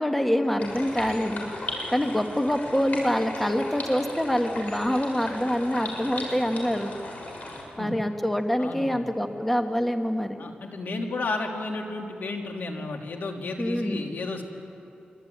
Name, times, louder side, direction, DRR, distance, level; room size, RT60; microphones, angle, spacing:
voice 1, 0.0-6.9 7.8-10.4 13.6-14.0, equal, 5° left, 5 dB, 1.5 m, -26 dB
sound 1, 0.6-7.6, left 2 dB, 55° left, 6.7 m, -37 dB
voice 2, 8.6-9.1 10.4-14.4, left 3 dB, 75° left, 2 dB, 3.2 m, -32 dB
25.5 x 24.0 x 9.6 m, 2.7 s
cardioid pair, 85°, 3 cm